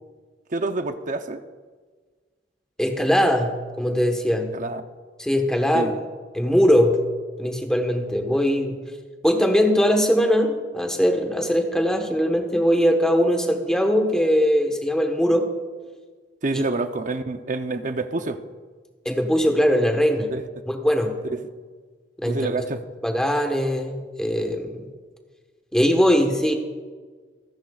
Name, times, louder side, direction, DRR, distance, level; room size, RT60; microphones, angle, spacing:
voice 1, 0.5-1.4 4.5-4.8 5.7-5.9 16.4-18.4 20.3-20.4 21.3-21.4 22.3-22.8, right 3 dB, 45° right, 8 dB, 0.7 m, -27 dB
voice 2, 2.8-4.6 5.2-5.9 6.3-7.1 7.4-8.8 9.2-15.5 16.5-16.6 19.0-20.3 20.7-21.2 22.2-22.5 23.0-24.9 25.7-26.5, equal, 5° left, 3 dB, 1.3 m, -21 dB
27.5 x 10.5 x 2.4 m, 1.5 s
head